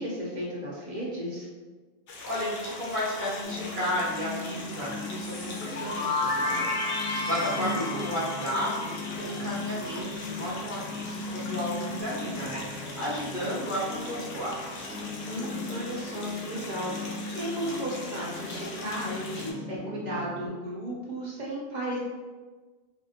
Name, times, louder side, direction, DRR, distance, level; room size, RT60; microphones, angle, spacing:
voice 1, 0.0-1.5 7.5-8.0 15.3-16.9 17.3-22.0, equal, 50° right, -5 dB, 0.8 m, -34 dB
sound 1, 2.1-19.5, left 2 dB, 75° left, 0.9 m, -41 dB
voice 2, 2.2-6.7 6.9-14.9, equal, 10° left, -9 dB, 1.0 m, -33 dB
sound 2, 3.4-20.5, left 2 dB, 70° right, 1.1 m, -39 dB
sound 3, 5.2-10.0, left 2 dB, 50° left, 0.5 m, -32 dB
4.2 x 2.0 x 2.8 m, 1.3 s
omnidirectional pair, 1.0 m